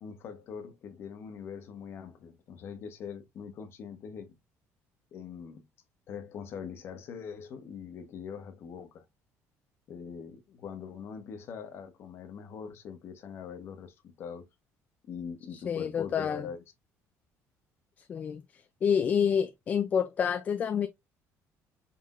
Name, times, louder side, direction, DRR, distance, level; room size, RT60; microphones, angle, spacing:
voice 1, 0.0-4.4 5.1-5.6 6.1-9.0 9.9-14.4 15.1-16.6, left 7 dB, 45° left, 1.0 m, -42 dB
voice 2, 15.5-16.5 18.1-20.9, left 7 dB, 30° left, 0.3 m, -28 dB
5.5 x 3.4 x 2.4 m
cardioid pair, 175°, 6 cm